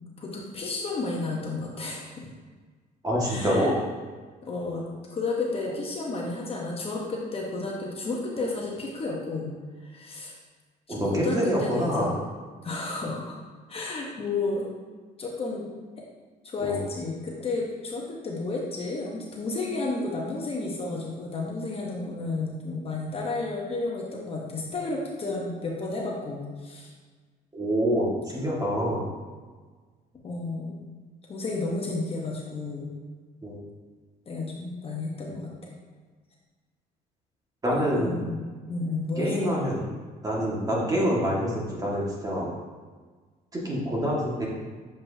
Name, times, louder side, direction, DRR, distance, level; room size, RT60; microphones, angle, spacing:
voice 1, 0.0-2.3 3.2-3.8 4.4-4.8 5.1-9.5 9.8-10.3 11.0-12.1 12.6-13.4 13.7-14.7 15.2-15.7 16.4-26.9 30.2-30.8 31.3-32.9 34.3-35.7 37.7-39.5, left 3 dB, 35° left, -2 dB, 1.1 m, -32 dB
voice 2, 3.0-3.7 10.9-12.1 16.6-16.8 27.5-29.2 33.4-33.6 37.6-38.1 39.2-40.0 40.2-42.5 43.5-44.5, equal, 20° right, -4 dB, 1.8 m, -26 dB
7.2 x 5.1 x 2.8 m, 1.4 s
cardioid pair, 110°, 17 cm